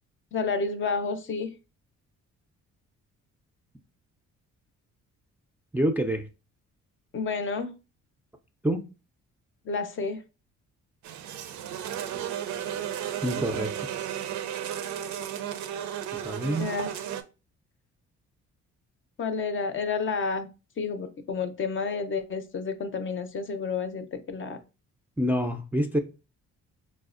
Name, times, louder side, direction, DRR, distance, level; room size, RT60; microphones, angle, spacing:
voice 1, 0.3-1.5 7.1-7.7 9.7-10.2 16.6-16.9 19.2-20.5 20.8-24.6, left 4 dB, 40° left, 8 dB, 0.5 m, -30 dB
voice 2, 5.7-6.3 8.6-8.8 13.2-13.7 16.1-16.7 25.2-26.0, equal, 5° right, 5 dB, 0.4 m, -26 dB
sound 1, 11.0-17.2, right 10 dB, 70° right, 0.5 m, -34 dB
4.7 x 2.0 x 2.4 m, 0.30 s
cardioid pair, 90°, 30 cm